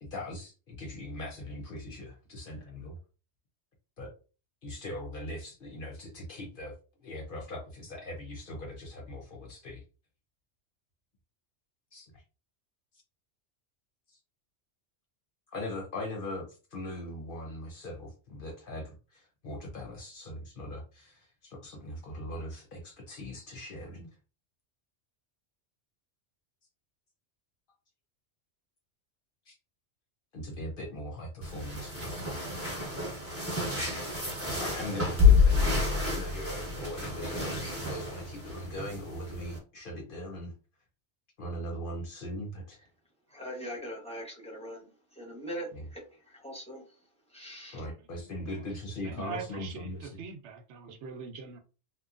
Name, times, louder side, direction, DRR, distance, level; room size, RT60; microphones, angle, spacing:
voice 1, 0.0-3.0 4.0-4.1 4.6-6.7 7.0-9.8 11.9-12.1 15.5-24.1 29.5-29.6 30.3-32.4 34.6-40.5 41.4-42.9 45.7-45.9 47.7-50.2, left 1 dB, 55° left, 0.9 m, -40 dB
sound 1, 31.4-39.6, left 4 dB, 15° right, 1.0 m, -28 dB
voice 2, 43.3-44.9 45.2-45.7 45.9-46.0 46.4-46.8 47.3-47.8, equal, 5° left, 0.8 m, -40 dB
voice 3, 48.0-48.7 49.0-51.6, right 6 dB, 80° right, 0.9 m, -43 dB
2.9 x 2.2 x 2.4 m
omnidirectional pair, 1.2 m